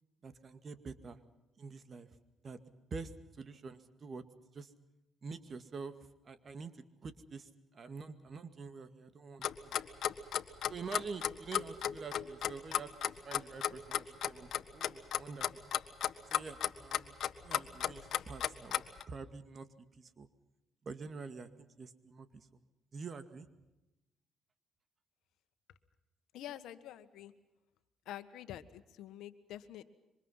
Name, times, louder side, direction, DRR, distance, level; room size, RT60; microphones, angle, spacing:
voice 1, 0.2-1.2 1.6-2.1 2.4-2.6 2.9-4.2 4.5-4.7 5.2-5.9 6.2-9.8 10.7-15.7 16.3-17.2 17.4-19.7 20.0-20.3 20.8-22.6 22.9-23.5, right 4 dB, 45° right, 10 dB, 2.1 m, -47 dB
Clock, 9.4-19.0, left 10 dB, 70° left, 1.5 m, -34 dB
voice 2, 26.3-27.3 28.0-29.8, left 12 dB, 85° left, 11 dB, 1.5 m, -47 dB
27.0 x 25.0 x 5.7 m, 1.0 s
cardioid pair, 90°, 0 cm